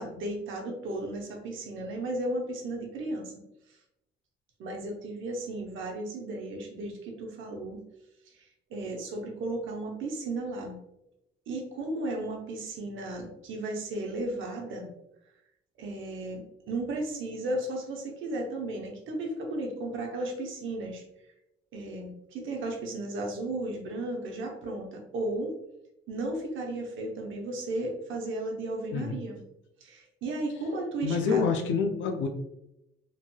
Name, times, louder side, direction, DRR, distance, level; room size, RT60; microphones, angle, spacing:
voice 1, 0.0-3.3 4.6-7.8 8.3-10.8 11.5-14.9 15.8-21.0 21.7-25.6 26.1-29.4 29.8-31.6, right 2 dB, 80° right, 1 dB, 0.8 m, -34 dB
voice 2, 31.0-32.3, left 5 dB, 75° left, 4 dB, 0.4 m, -27 dB
3.1 x 2.8 x 2.2 m, 0.85 s
cardioid pair, 90°, 20 cm